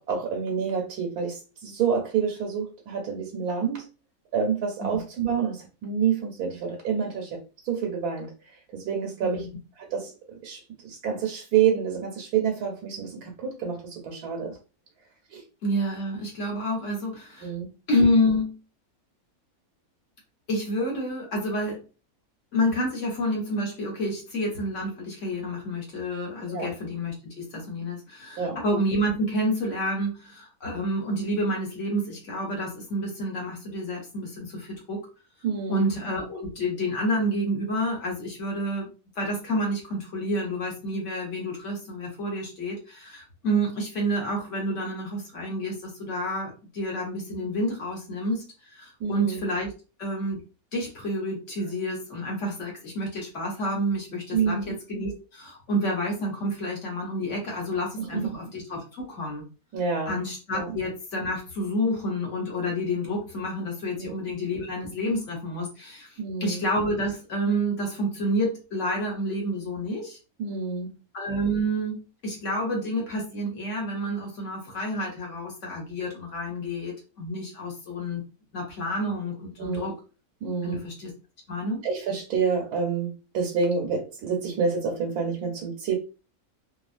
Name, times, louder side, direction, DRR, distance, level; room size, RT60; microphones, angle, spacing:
voice 1, 0.0-3.8 4.3-8.3 8.7-9.5 9.8-14.6 15.3-15.4 17.4-17.7 26.5-26.7 28.4-28.6 35.4-35.9 49.0-49.4 54.3-54.8 58.0-58.3 59.7-60.2 60.5-60.7 64.0-64.1 66.2-66.6 70.4-70.9 79.6-79.9 80.4-80.8 81.8-85.9, right 6 dB, 85° right, 1.1 m, -28 dB
voice 2, 15.6-17.5 17.9-18.6 20.5-21.8 22.5-35.0 35.7-38.9 39.2-48.4 48.7-49.7 50.0-50.4 50.7-59.4 60.1-70.2 71.1-78.2 78.5-79.9 80.6-81.1 81.5-81.9, equal, 55° left, 1.2 m, -29 dB
2.7 x 2.3 x 2.4 m
omnidirectional pair, 1.6 m